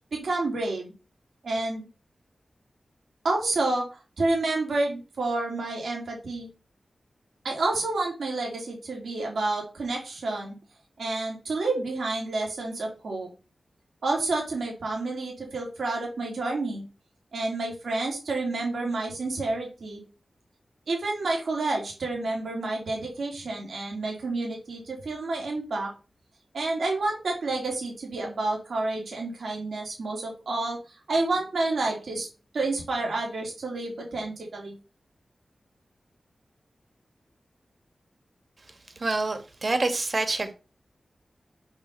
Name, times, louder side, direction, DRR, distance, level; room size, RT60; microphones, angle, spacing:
voice 1, 0.1-0.9 1.4-1.9 3.2-6.5 7.4-10.5 11.0-13.3 14.0-16.8 17.3-20.0 20.9-25.9 26.5-32.3 32.5-34.7, right 2 dB, 85° right, 3.5 m, -29 dB
voice 2, 39.0-40.5, right 2 dB, 50° right, 2.2 m, -27 dB
7.1 x 5.9 x 7.0 m
wide cardioid pair, 80°, 0 cm